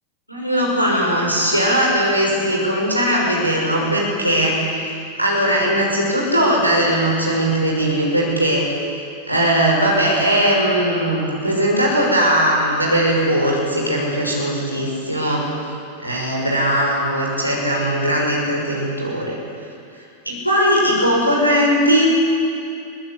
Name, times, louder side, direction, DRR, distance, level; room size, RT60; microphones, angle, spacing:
voice 1, 0.3-4.6 5.2-8.6 9.3-15.4 16.0-19.4 20.2-22.1, equal, 90° right, -3 dB, 5.9 m, -19 dB
24.0 x 19.0 x 8.4 m, 2.5 s
figure-of-eight pair, 90°, 0 cm